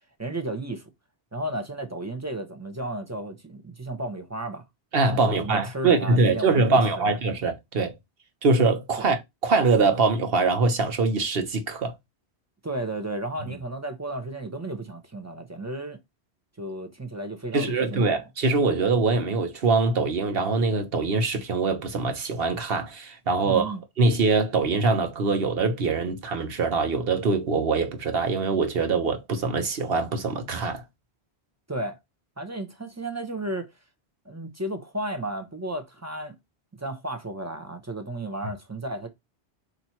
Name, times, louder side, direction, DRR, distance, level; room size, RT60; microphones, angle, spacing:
voice 1, 0.2-0.8 1.3-4.6 5.1-7.1 9.0-9.1 12.6-16.0 16.6-18.2 23.4-23.8 31.7-32.0 32.4-33.7 34.2-36.4 36.8-39.1, right 1 dB, 15° right, 0.8 m, -33 dB
voice 2, 4.9-7.9 8.4-11.9 17.5-30.8, right 4 dB, 65° right, 1.1 m, -23 dB
4.1 x 2.9 x 4.4 m
omnidirectional pair, 1.1 m